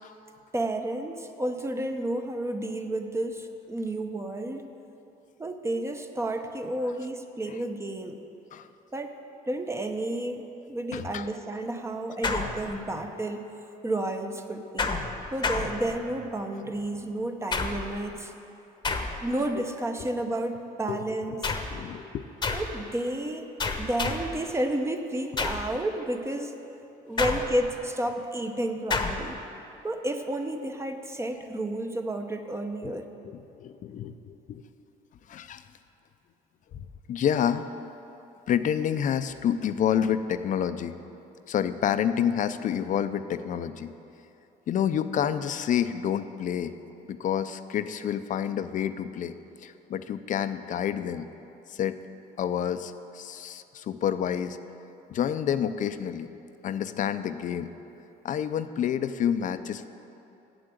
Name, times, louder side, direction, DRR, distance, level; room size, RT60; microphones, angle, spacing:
voice 1, 0.5-4.7 5.4-8.2 8.9-9.1 9.5-13.5 13.8-14.9 15.3-18.3 19.2-21.5 22.5-23.5 23.8-26.5 27.0-29.3 29.8-33.1, right 1 dB, 15° right, 5 dB, 0.7 m, -31 dB
voice 2, 10.9-11.3 20.9-21.0 21.7-22.3 32.8-33.0 33.2-34.6 35.3-35.6 37.1-37.6 38.5-41.0 41.5-43.9 44.7-46.7 47.1-49.4 49.6-51.3 51.7-52.0 52.4-54.6 55.1-56.3 56.6-57.7 58.2-59.9, left 9 dB, 50° left, 11 dB, 0.5 m, -28 dB
sound 1, 12.2-13.1 14.8-16.3 17.5-18.1 18.8-19.5 21.4-21.8 22.4-22.8 23.6-24.4 25.4-25.8 27.2-27.8 28.9-29.3, left 4 dB, 25° left, 0.9 m, -30 dB
8.9 x 7.8 x 7.8 m, 2.9 s
cardioid pair, 110°, 17 cm